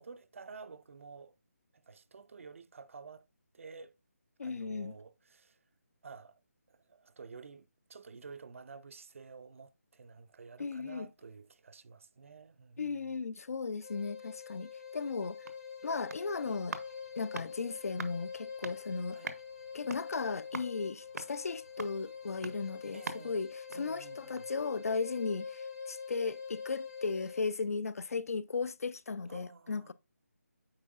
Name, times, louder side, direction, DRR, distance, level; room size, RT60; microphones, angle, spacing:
voice 1, 0.0-1.3 1.7-3.3 3.5-4.0 4.4-5.6 6.0-6.4 6.7-12.9 16.4-16.6 19.1-19.3 22.9-23.4 23.7-24.5 29.3-29.9, right 5 dB, 55° right, 0.5 m, -51 dB
voice 2, 4.4-4.9 10.6-11.1 12.8-15.4 15.8-16.8 17.2-19.2 19.7-29.9, left 4 dB, 65° left, 0.5 m, -36 dB
sound 1, 13.8-27.5, left 6 dB, 90° left, 3.0 m, -45 dB
sound 2, 15.3-24.6 25.0-25.1, right 3 dB, 80° right, 1.0 m, -47 dB
8.7 x 4.6 x 2.4 m
figure-of-eight pair, 165°, 9 cm